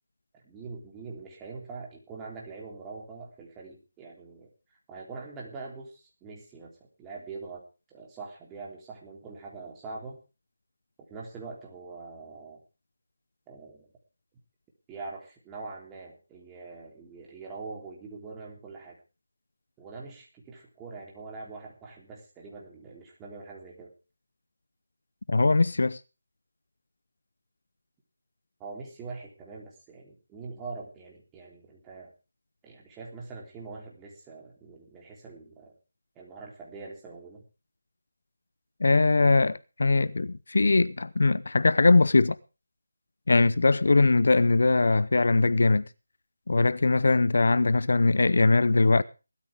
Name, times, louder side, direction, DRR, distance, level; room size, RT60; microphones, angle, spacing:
voice 1, 0.3-4.5 4.9-6.7 7.0-7.6 7.9-10.2 11.1-12.6 13.5-13.9 14.9-19.0 19.8-23.9 28.6-32.1 32.6-35.7 36.2-37.4, right 4 dB, 10° right, 3.5 m, -43 dB
voice 2, 25.3-26.0 38.8-42.4 43.3-45.8 46.5-49.0, left 3 dB, 60° left, 0.7 m, -21 dB
19.0 x 13.0 x 3.6 m
figure-of-eight pair, 165°, 0 cm